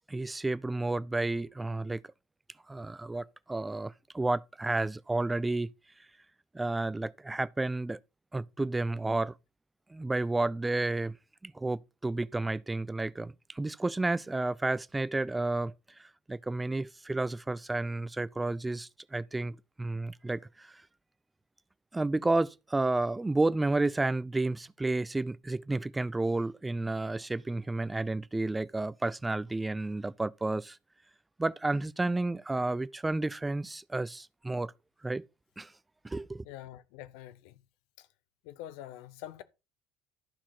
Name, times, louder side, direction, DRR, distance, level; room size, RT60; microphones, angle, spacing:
voice 1, 0.1-2.0 2.7-5.7 6.5-8.0 8.3-9.3 9.9-11.2 11.4-15.7 16.0-20.7 21.9-30.8 31.4-34.7 35.0-35.3 35.6-35.7 36.0-36.4, right 2 dB, 15° right, 0.5 m, -31 dB
voice 2, 36.4-37.6 38.0-38.1 38.4-39.4, left 13 dB, 65° left, 0.7 m, -45 dB
12.0 x 5.6 x 4.4 m
hypercardioid pair, 65°, 0 cm